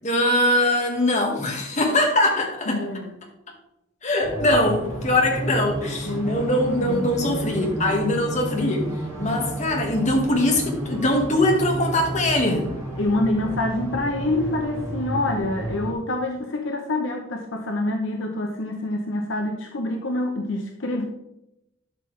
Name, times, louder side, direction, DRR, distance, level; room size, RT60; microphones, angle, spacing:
voice 1, 0.0-2.9 4.0-8.8 9.2-12.7, left 1 dB, 35° left, 1 dB, 1.7 m, -22 dB
voice 2, 2.7-3.1 6.1-7.4 13.0-21.1, left 1 dB, 70° left, 3 dB, 0.9 m, -26 dB
sound 1, 4.2-15.9, right 1 dB, 15° right, 2.2 m, -31 dB
12.0 x 5.5 x 3.3 m, 0.85 s
head